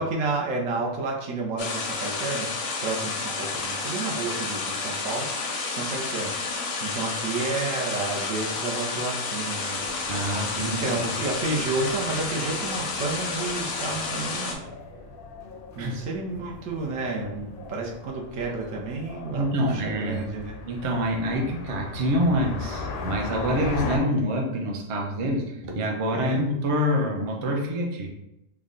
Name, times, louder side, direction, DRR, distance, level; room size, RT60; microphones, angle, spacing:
voice 1, 0.0-2.5 2.8-5.3 5.7-9.8 10.6-14.6 15.7-20.6 26.1-26.4, right 3 dB, 75° right, -1 dB, 1.1 m, -31 dB
sound 1, 1.6-14.5, left 4 dB, 90° left, 1.1 m, -30 dB
sound 2, 9.7-24.0, left 3 dB, 60° left, 0.6 m, -39 dB
voice 2, 10.1-10.8 15.8-15.9 19.3-20.3 20.7-28.1, equal, 55° right, 0 dB, 0.3 m, -26 dB
3.5 x 2.2 x 3.7 m, 0.89 s
omnidirectional pair, 1.4 m